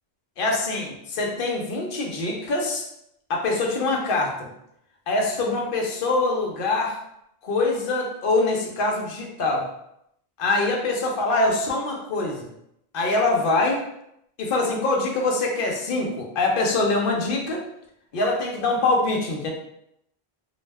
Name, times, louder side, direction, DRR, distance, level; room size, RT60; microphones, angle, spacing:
voice 1, 0.4-2.9 3.3-4.5 5.1-7.0 7.4-9.7 10.4-12.5 12.9-13.8 14.4-17.6 18.1-19.5, left 2 dB, 60° left, 1 dB, 0.7 m, -24 dB
2.3 x 2.1 x 3.3 m, 0.76 s
omnidirectional pair, 1.1 m